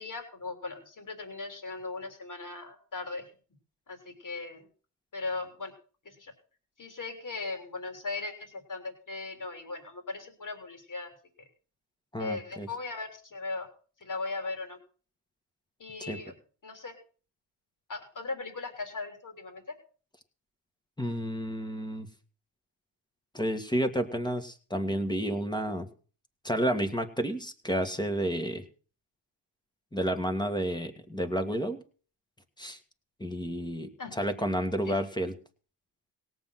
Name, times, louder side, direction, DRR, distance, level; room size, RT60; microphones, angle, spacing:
voice 1, 0.0-3.2 3.9-4.6 5.1-5.7 6.1-6.3 6.8-11.1 12.2-13.7 14.0-14.8 15.8-16.3 16.6-16.9 17.9-19.6 34.0-34.1 34.9-35.0, left 3 dB, 45° left, 4 dB, 3.8 m, -38 dB
voice 2, 12.1-12.7 16.0-16.2 21.0-22.1 23.3-25.9 26.4-28.6 29.9-31.8 32.6-32.8 33.2-35.3, equal, 10° left, 8 dB, 1.9 m, -31 dB
17.5 x 7.9 x 5.9 m, 0.40 s
cardioid pair, 70°, 44 cm